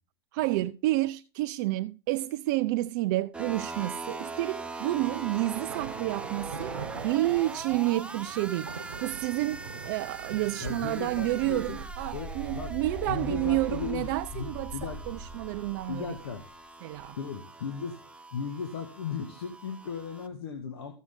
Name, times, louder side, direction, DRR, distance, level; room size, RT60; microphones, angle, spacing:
voice 1, 0.3-6.8 7.0-16.2 16.8-17.2, right 17 dB, 45° right, 0.4 m, -30 dB
sound 1, 3.3-20.3, right 3 dB, 10° right, 0.8 m, -42 dB
sound 2, 4.6-4.7 5.4-11.9, right 6 dB, 75° right, 0.9 m, -42 dB
voice 2, 10.6-11.8 12.1-14.1 14.3-15.0 15.9-16.4 17.2-18.0 18.3-20.9, left 6 dB, 65° left, 1.6 m, -36 dB
sound 3, 10.9-16.5 17.0-17.1, equal, 35° left, 3.3 m, -42 dB
14.5 x 6.4 x 3.8 m
figure-of-eight pair, 100°, 14 cm